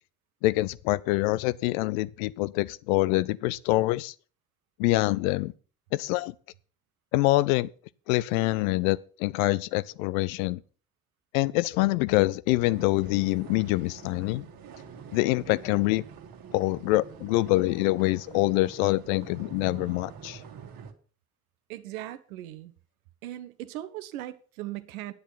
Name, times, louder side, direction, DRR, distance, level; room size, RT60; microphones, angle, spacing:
voice 1, 0.4-4.1 4.8-5.5 5.9-6.3 7.1-7.7 8.1-10.6 11.3-14.4 15.1-16.0 16.5-20.4, left 19 dB, 70° left, 0.7 m, -25 dB
sound 1, 12.7-20.9, right 7 dB, 55° right, 2.0 m, -46 dB
voice 2, 21.7-22.7 23.2-25.1, right 14 dB, 75° right, 1.1 m, -38 dB
10.0 x 9.7 x 5.8 m
figure-of-eight pair, 50°, 43 cm